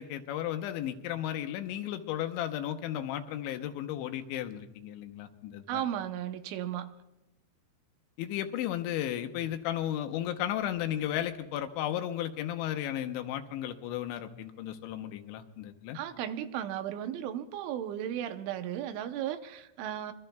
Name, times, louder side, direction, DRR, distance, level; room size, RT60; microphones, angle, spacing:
voice 1, 0.0-5.8 8.2-16.0, left 11 dB, 85° left, 7 dB, 3.2 m, -34 dB
voice 2, 5.7-6.9 15.9-20.1, right 10 dB, 85° right, 9 dB, 3.2 m, -35 dB
26.0 x 22.5 x 2.3 m, 0.93 s
omnidirectional pair, 5.3 m